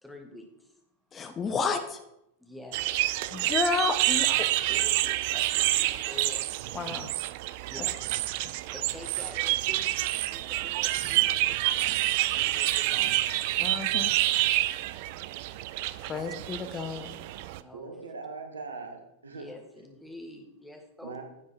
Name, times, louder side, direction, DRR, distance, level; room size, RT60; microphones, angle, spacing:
voice 1, 0.0-0.8 2.4-3.1 4.3-6.4 7.7-8.0 8.7-11.9 12.3-13.4 16.1-16.3 17.3-18.0 19.3-21.2, left 1 dB, ahead, 2 dB, 1.9 m, -47 dB
voice 2, 1.1-2.0 3.3-4.3 6.7-7.1 13.6-14.1 16.0-17.1, left 5 dB, 25° left, 8 dB, 0.9 m, -31 dB
sound 1, 2.7-17.6, right 16 dB, 50° right, 0.4 m, -28 dB
voice 3, 17.7-19.5 21.0-21.2, right 4 dB, 70° right, 4 dB, 1.6 m, -40 dB
10.5 x 7.3 x 4.5 m, 0.85 s
figure-of-eight pair, 90°, 0 cm